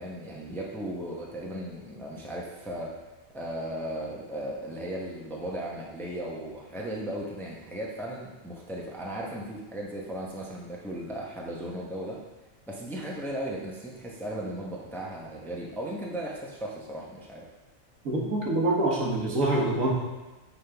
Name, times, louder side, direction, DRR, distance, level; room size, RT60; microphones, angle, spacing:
voice 1, 0.0-2.9 3.3-12.2 12.7-17.5, right 1 dB, ahead, -3 dB, 0.7 m, -36 dB
voice 2, 18.0-19.9, right 2 dB, 80° right, -2 dB, 1.6 m, -25 dB
9.4 x 3.7 x 3.4 m, 1.1 s
omnidirectional pair, 1.4 m